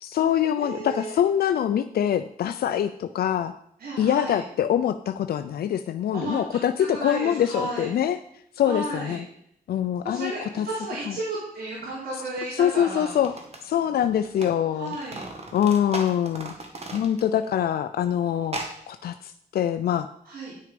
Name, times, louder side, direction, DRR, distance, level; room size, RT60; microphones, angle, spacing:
voice 1, 0.0-3.5 4.0-8.2 8.6-9.3 9.7-10.7 11.1-11.2 12.1-12.2 12.5-13.3 13.6-15.0 15.5-16.5 16.9-18.6 18.9-20.1, left 10 dB, 90° left, 10 dB, 0.4 m, -24 dB
voice 2, 0.5-1.1 3.8-4.4 6.1-6.4 6.9-7.9 8.6-9.2 10.0-13.2 14.8-15.3 20.3-20.5, right 2 dB, 80° right, -6 dB, 3.3 m, -33 dB
sound 1, 12.4-12.5 13.1-14.5 14.8-17.5 17.8-17.9 18.4-18.8, right 2 dB, 45° right, 1.8 m, -37 dB
9.9 x 6.5 x 5.1 m, 0.68 s
cardioid pair, 90°, 15 cm